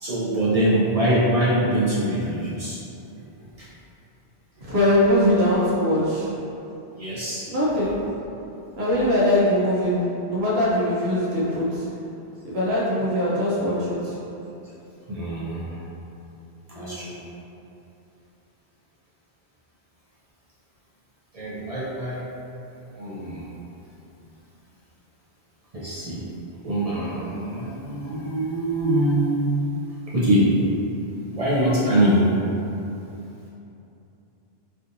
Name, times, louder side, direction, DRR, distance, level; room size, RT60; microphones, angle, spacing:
voice 1, 0.0-2.8 3.6-3.7 6.9-7.4 15.1-15.8 16.7-17.1 21.3-22.2 22.7-23.5 25.7-26.2 26.6-29.3 30.1-30.5 31.3-32.2, right 1 dB, 45° right, -8 dB, 0.6 m, -23 dB
voice 2, 4.6-6.3 7.5-8.1 8.8-11.9 12.4-14.2 16.7-17.2, left 1 dB, 75° right, -8 dB, 1.0 m, -22 dB
3.4 x 2.6 x 2.6 m, 2.8 s
omnidirectional pair, 1.1 m